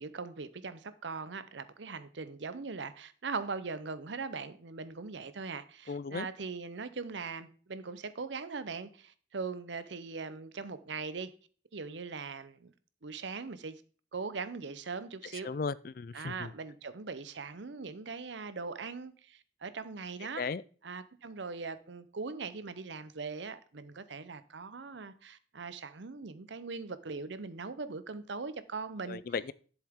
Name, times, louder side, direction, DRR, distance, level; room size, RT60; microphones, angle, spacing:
voice 1, 0.0-11.3 11.7-12.7 13.0-13.8 14.1-15.5 16.1-20.4 20.8-29.2, right 4 dB, 75° right, 0.7 m, -40 dB
voice 2, 5.9-6.3 15.4-16.5 20.4-20.6 29.1-29.5, left 5 dB, 50° left, 0.4 m, -36 dB
11.0 x 7.2 x 3.6 m
head